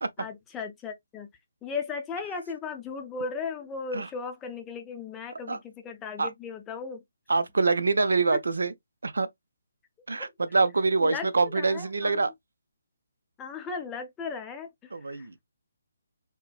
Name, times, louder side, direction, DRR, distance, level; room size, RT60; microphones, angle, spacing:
voice 1, 0.2-1.3 1.6-7.0 8.3-8.4 10.2-10.3 11.0-11.3 11.5-12.2 13.4-15.4, left 4 dB, 10° left, 0.6 m, -36 dB
voice 2, 7.3-8.7 9.0-9.3 10.1-12.3 14.9-15.4, right 3 dB, 80° right, 0.5 m, -25 dB
4.5 x 2.0 x 2.3 m
figure-of-eight pair, 155°, 0 cm